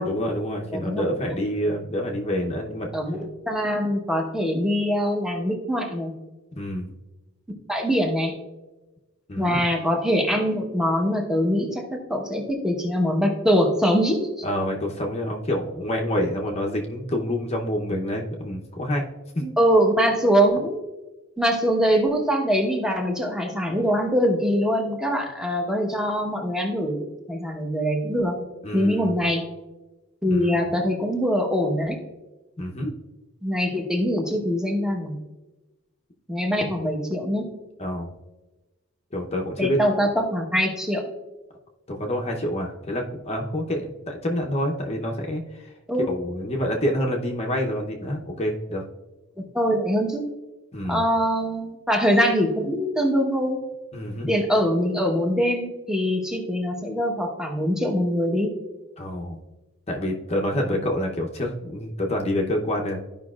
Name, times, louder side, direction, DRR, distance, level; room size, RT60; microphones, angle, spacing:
voice 1, 0.0-2.9 6.6-6.9 9.3-9.6 14.4-19.0 19.3-19.6 28.6-29.1 30.3-30.5 32.6-33.0 37.8-38.1 39.1-40.1 41.9-45.7 46.1-48.8 50.7-51.0 53.9-54.3 59.0-59.4 59.9-63.0, equal, 30° left, 1 dB, 0.8 m, -27 dB
voice 2, 0.7-1.1 2.9-6.1 7.7-8.3 9.4-14.4 19.6-20.8 21.4-28.4 28.7-29.4 30.2-32.0 33.4-35.2 36.3-37.5 39.6-41.0 45.9-46.1 49.5-50.2 50.9-53.6 54.3-58.5, equal, 5° right, 1 dB, 1.0 m, -23 dB
13.5 x 5.3 x 2.4 m, 1.1 s
head